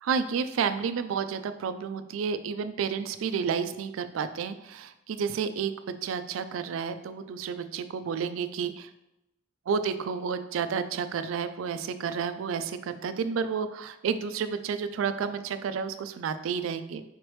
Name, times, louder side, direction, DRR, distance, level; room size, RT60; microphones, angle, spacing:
voice 1, 0.0-5.7 6.0-8.9 9.7-17.0, right 6 dB, 70° right, 11 dB, 0.3 m, -31 dB
4.9 x 3.1 x 3.1 m, 0.88 s
head